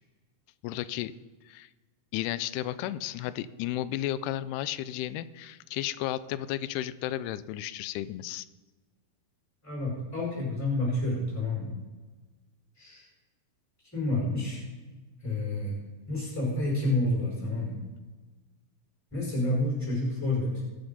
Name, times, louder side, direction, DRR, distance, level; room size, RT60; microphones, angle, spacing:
voice 1, 0.6-1.1 1.5-1.7 2.1-8.5, left 13 dB, 90° left, 16 dB, 2.6 m, -33 dB
voice 2, 9.6-11.7 12.8-13.0 13.9-14.6 15.2-15.8 16.1-17.8 19.1-20.6, left 2 dB, 5° left, -3 dB, 4.5 m, -29 dB
21.0 x 7.1 x 5.4 m, 1.3 s
omnidirectional pair, 4.5 m